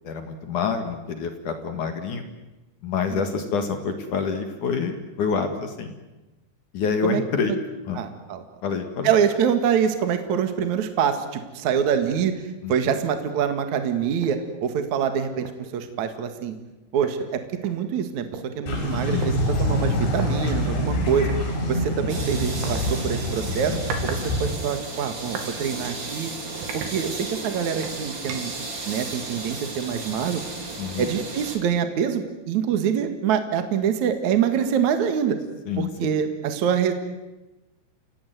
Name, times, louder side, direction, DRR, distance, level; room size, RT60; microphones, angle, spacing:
voice 1, 0.0-2.2 2.8-5.9 6.7-7.5 7.9-8.0 8.6-9.1 12.6-13.0 19.1-19.3 23.4-23.8 30.8-31.1 35.7-36.1, left 6 dB, 55° left, 6 dB, 2.7 m, -27 dB
voice 2, 7.0-7.6 7.9-8.4 9.0-12.3 12.7-16.6 16.9-18.3 18.6-19.3 19.6-21.3 21.7-23.8 24.0-26.3 26.7-28.5 28.9-30.5 31.0-35.4 35.8-36.9, right 8 dB, 55° right, 8 dB, 2.4 m, -25 dB
sound 1, 14.2-14.4 14.9-15.0 15.4-15.7 16.7-16.8 17.0-18.4 19.2-19.4 20.1-20.3 21.3-21.5 22.6-22.8 23.6-24.2 24.6-25.5 26.0-26.1 26.6-27.4 27.8-28.6, right 5 dB, 80° right, 4.9 m, -36 dB
sound 2, 18.7-24.5, left 1 dB, 75° left, 8.2 m, -26 dB
sound 3, 22.1-31.6, right 3 dB, 25° right, 3.3 m, -34 dB
29.5 x 18.0 x 9.3 m, 1.1 s
omnidirectional pair, 5.3 m